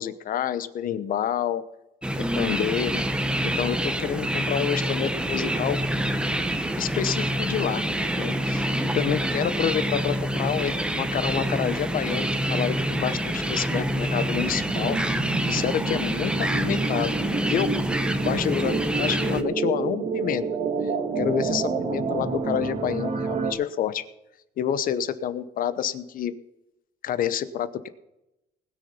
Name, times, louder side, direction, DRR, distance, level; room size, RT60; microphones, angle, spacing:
voice 1, 0.0-1.6 2.4-3.0 3.4-5.8 6.8-7.8 8.1-8.7 8.9-15.0 15.5-17.7 18.2-20.4 21.2-24.0 24.6-26.3 27.0-27.9, left 9 dB, 55° left, 14 dB, 0.9 m, -28 dB
sound 1, 2.0-19.4, right 1 dB, 5° right, 1.0 m, -26 dB
sound 2, 14.2-23.5, right 5 dB, 40° right, 2.1 m, -29 dB
20.0 x 6.7 x 5.6 m, 0.91 s
cardioid pair, 110°, 17 cm